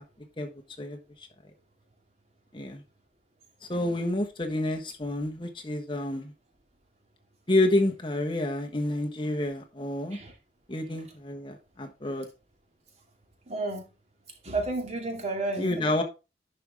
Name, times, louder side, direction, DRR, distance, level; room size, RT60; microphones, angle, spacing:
voice 1, 0.8-1.3 2.5-2.8 3.7-6.3 7.5-10.2 10.7-12.3 15.6-16.0, left 1 dB, 30° left, 1.3 m, -29 dB
voice 2, 13.5-13.8 14.4-15.8, right 2 dB, 40° right, 2.4 m, -31 dB
11.0 x 5.4 x 3.5 m
head